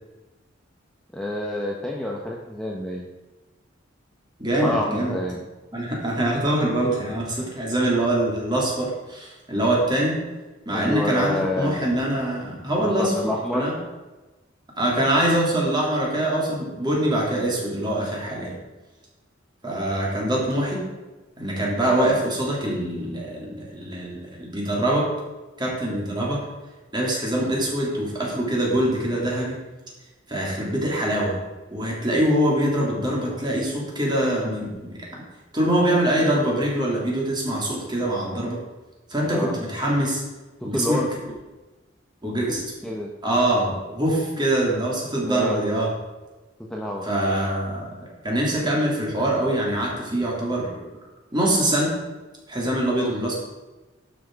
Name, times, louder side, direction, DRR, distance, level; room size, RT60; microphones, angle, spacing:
voice 1, 1.1-3.1 4.6-5.4 10.7-11.8 12.8-13.7 39.2-39.6 40.6-41.1 42.8-43.1 45.2-45.6 46.6-47.1 53.0-53.3, left 1 dB, 5° left, -3 dB, 1.0 m, -28 dB
voice 2, 4.4-5.2 5.7-10.2 10.7-13.1 13.5-13.7 14.8-18.6 19.6-20.8 21.4-25.1 25.6-26.4 26.9-29.6 30.3-31.4 31.7-35.2 35.5-38.6 39.1-40.2 40.6-41.0 42.2-42.6 43.2-45.9 47.1-50.7 51.3-51.9 52.5-53.3, right 1 dB, 25° right, -3 dB, 2.9 m, -24 dB
12.0 x 6.4 x 4.7 m, 1.2 s
head